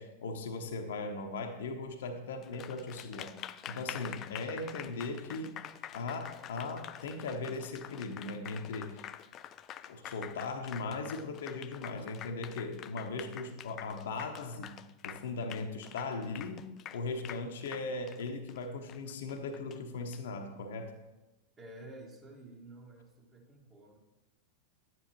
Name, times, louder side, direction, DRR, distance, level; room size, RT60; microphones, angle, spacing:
voice 1, 0.0-3.3 3.7-5.6 5.9-9.1 9.9-20.9, left 3 dB, 60° left, 5 dB, 0.9 m, -38 dB
Applause, 2.4-20.2, left 10 dB, 30° left, 0.3 m, -47 dB
voice 2, 21.6-24.0, right 1 dB, 20° right, 0 dB, 1.7 m, -51 dB
11.0 x 9.3 x 3.0 m, 1.1 s
figure-of-eight pair, 90°, 0 cm